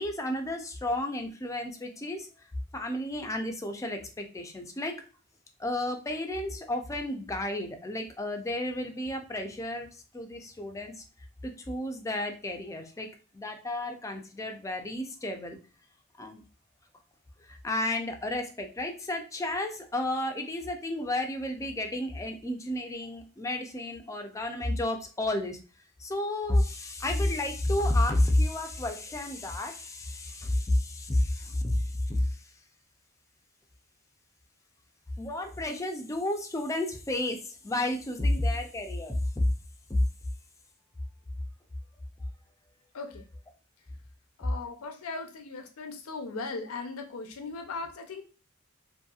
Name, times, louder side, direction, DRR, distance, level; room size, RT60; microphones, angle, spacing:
voice 1, 0.0-2.3 2.7-4.9 5.6-9.9 10.1-11.0 11.4-13.1 13.3-15.6 16.2-16.4 17.5-25.6 26.0-32.4 35.2-39.4 39.9-40.0, left 1 dB, 15° left, 4 dB, 0.3 m, -31 dB
voice 2, 42.9-43.3 44.4-48.2, left 3 dB, 80° left, 5 dB, 0.5 m, -38 dB
2.7 x 2.6 x 2.3 m, 0.35 s
head